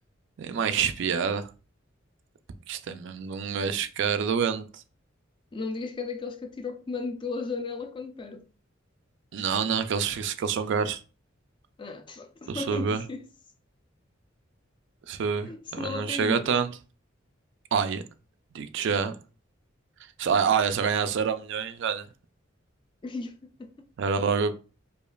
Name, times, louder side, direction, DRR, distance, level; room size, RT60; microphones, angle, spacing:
voice 1, 0.4-1.5 2.7-4.8 9.3-11.0 12.5-13.0 15.1-16.7 17.7-18.0 18.5-19.1 20.2-22.1 24.0-24.5, right 6 dB, 65° right, 0.4 m, -27 dB
voice 2, 5.5-8.4 11.8-13.2 15.5-16.5 23.0-23.9, left 3 dB, 25° left, 0.4 m, -35 dB
5.0 x 2.4 x 2.3 m
head